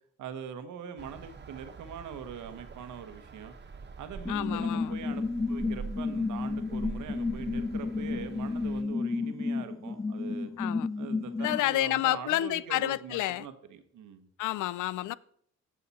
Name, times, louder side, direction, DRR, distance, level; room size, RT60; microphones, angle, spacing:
voice 1, 0.2-3.5 4.0-10.5 11.0-14.3, right 8 dB, 80° right, 1.2 m, -42 dB
sound 1, 1.0-8.8, right 5 dB, 35° right, 1.3 m, -45 dB
voice 2, 4.3-4.9 10.6-10.9 11.4-13.5 14.4-15.1, left 15 dB, 80° left, 0.5 m, -29 dB
sound 2, 4.3-11.6, left 3 dB, 10° left, 0.4 m, -32 dB
17.0 x 5.7 x 4.2 m
cardioid pair, 90°, 30 cm